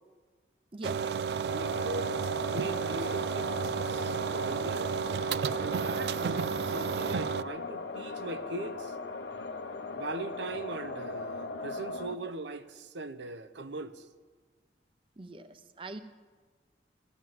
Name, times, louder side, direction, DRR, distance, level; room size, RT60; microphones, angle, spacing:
sound 1, 0.8-7.4, right 6 dB, 70° right, 0.4 m, -32 dB
voice 1, 0.8-1.2 1.4-2.2 2.5-3.5 3.8-5.0 5.6-6.3 6.6-8.9 9.9-14.1, right 2 dB, 90° right, 0.7 m, -40 dB
sound 2, 1.5-12.2, left 3 dB, 80° left, 0.9 m, -39 dB
voice 2, 15.2-16.0, right 2 dB, 30° right, 0.7 m, -42 dB
17.0 x 11.0 x 7.6 m
head